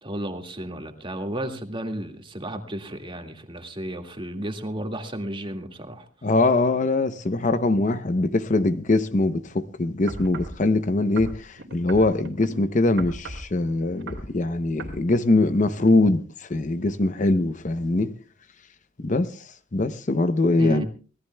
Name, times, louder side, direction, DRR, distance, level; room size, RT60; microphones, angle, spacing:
voice 1, 0.0-6.1 20.6-20.9, right 1 dB, 25° right, 2.0 m, -33 dB
voice 2, 6.2-18.1 19.0-19.3 19.7-20.8, left 2 dB, 40° left, 0.7 m, -22 dB
sound 1, 10.1-10.6 11.2-12.5 13.0-13.5 13.9-14.3 14.8-15.0 15.6-15.7, right 2 dB, 75° right, 2.9 m, -36 dB
25.0 x 18.0 x 2.2 m
head